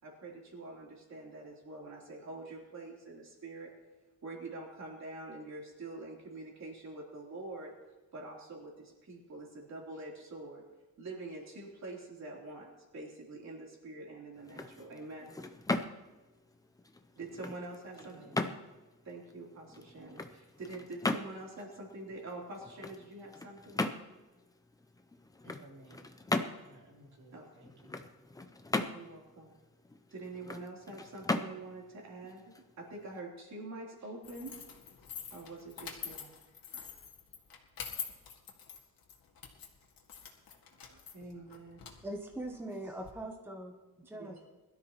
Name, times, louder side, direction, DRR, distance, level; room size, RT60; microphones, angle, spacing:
voice 1, 0.0-3.7 4.2-7.7 8.1-10.6 11.0-15.3 17.1-18.1 19.0-23.8 27.3-27.5 28.9-29.5 30.1-34.5 35.2-36.3 36.7-37.0 40.9-41.8 44.1-44.4, right 2 dB, 45° right, -2 dB, 3.4 m, -46 dB
sound 1, 14.3-33.2, left 2 dB, 10° left, 0.5 m, -39 dB
voice 2, 17.9-18.6 25.4-26.1 26.6-28.0, right 1 dB, 80° right, -3 dB, 3.7 m, -56 dB
sound 2, 34.2-43.1, left 7 dB, 70° left, 2.0 m, -46 dB
voice 3, 42.0-44.5, right 1 dB, 5° right, 2 dB, 0.9 m, -42 dB
21.5 x 12.5 x 3.0 m, 1.2 s
wide cardioid pair, 175°, 36 cm